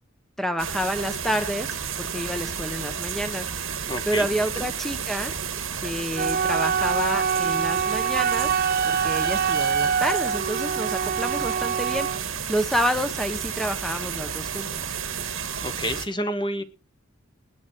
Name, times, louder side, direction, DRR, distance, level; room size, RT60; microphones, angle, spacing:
voice 1, 0.4-1.7 2.0-3.5 4.1-5.3 5.8-8.5 8.8-12.1 12.5-14.8, equal, ahead, 7 dB, 1.1 m, -29 dB
sound 1, 0.6-16.1, right 7 dB, 70° right, 1.9 m, -32 dB
sound 2, 0.9-16.0, left 1 dB, 60° left, 3.6 m, -46 dB
voice 2, 3.9-4.3 4.6-4.7 15.6-16.6, equal, 25° left, 9 dB, 1.2 m, -29 dB
Wind instrument woodwind instrument, 6.1-12.2, right 6 dB, 50° right, 0.6 m, -25 dB
20.0 x 7.2 x 4.5 m, 0.32 s
head